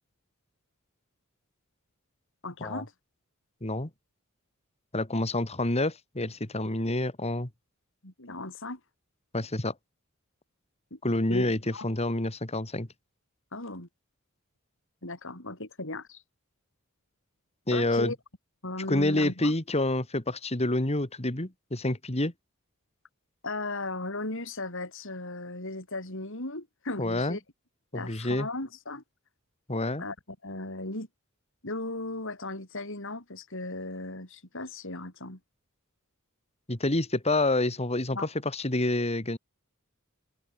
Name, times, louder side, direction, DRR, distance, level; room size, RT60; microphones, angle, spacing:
voice 1, 2.4-2.9 8.0-8.8 10.9-11.0 11.3-11.5 11.7-11.9 13.5-13.9 15.0-16.2 17.7-18.2 18.6-19.5 23.4-27.4 27.9-29.0 30.0-30.2 30.4-31.1 31.6-35.4 38.1-38.3, left 2 dB, 65° left, 7.6 m, -36 dB
voice 2, 4.9-7.5 9.3-9.7 11.0-11.6 11.8-12.9 17.7-18.1 18.9-22.3 27.0-27.4 27.9-28.5 29.7-30.0 36.7-38.2 38.4-39.4, left 2 dB, 30° left, 2.5 m, -28 dB
open air
head